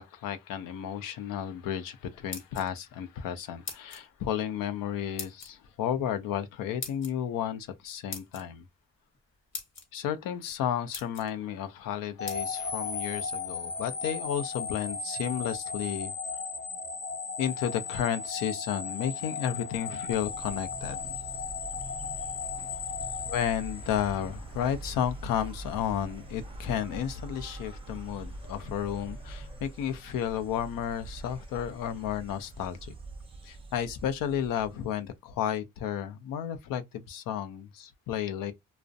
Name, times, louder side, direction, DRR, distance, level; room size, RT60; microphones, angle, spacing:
voice 1, 0.0-8.6 9.9-16.1 17.4-21.1 23.2-32.9 33.4-38.5, left 9 dB, 85° left, 0.5 m, -32 dB
sound 1, 2.1-2.9 3.6-4.1 5.2-5.5 6.8-7.1 8.1-8.4 9.1-9.2 9.5-9.8 10.5-10.6 10.9-11.3 12.3-12.4, left 4 dB, 55° left, 1.0 m, -40 dB
sound 2, 12.2-24.4, left 5 dB, 35° left, 0.5 m, -36 dB
Insect, 20.0-35.1, right 2 dB, 20° right, 0.4 m, -44 dB
2.4 x 2.0 x 2.5 m
cardioid pair, 90°, 32 cm